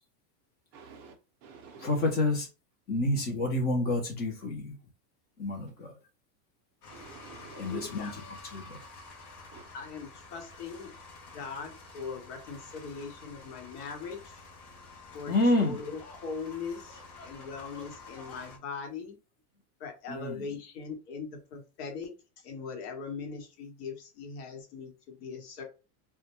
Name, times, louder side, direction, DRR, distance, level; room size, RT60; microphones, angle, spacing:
voice 1, 0.7-2.1 6.9-7.9 9.5-9.6 15.4-15.6, right 5 dB, 35° right, 4 dB, 0.4 m, -50 dB
voice 2, 1.8-2.5 2.9-4.8 5.4-5.9 7.6-8.8 15.3-15.8 20.1-20.5, left 2 dB, 20° left, 2 dB, 0.4 m, -29 dB
sound 1, 6.8-18.6, left 3 dB, 50° left, 0.7 m, -49 dB
voice 3, 7.4-8.1 9.7-10.9 11.3-14.4 15.1-19.2 19.8-22.1 22.4-25.6, left 5 dB, 75° left, 3 dB, 1.1 m, -40 dB
2.2 x 2.1 x 2.9 m, 0.31 s
supercardioid pair, 150°, 47 cm